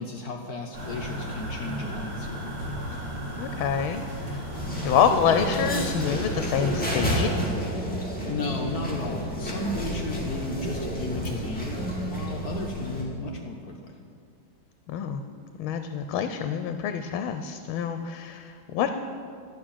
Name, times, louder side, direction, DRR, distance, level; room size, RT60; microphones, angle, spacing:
voice 1, 0.0-2.4 7.8-13.9, left 2 dB, 60° left, 2 dB, 1.2 m, -34 dB
sound 1, 0.7-7.5, equal, 80° right, 3.7 m, -35 dB
voice 2, 3.4-4.4 4.8-7.3 14.9-15.2 15.6-18.9, left 8 dB, 85° left, 8 dB, 1.4 m, -26 dB
sound 2, 4.5-13.0, equal, 5° left, 2.1 m, -30 dB
12.0 x 6.1 x 8.7 m, 2.3 s
omnidirectional pair, 2.2 m